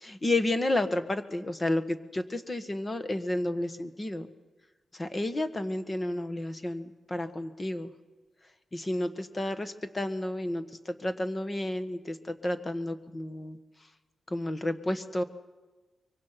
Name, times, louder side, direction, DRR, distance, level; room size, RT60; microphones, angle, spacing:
voice 1, 0.0-4.3 4.9-7.9 8.7-13.6 14.3-15.2, left 1 dB, 25° left, 10 dB, 1.5 m, -31 dB
25.0 x 23.5 x 5.9 m, 1.2 s
wide cardioid pair, 105°, 0 cm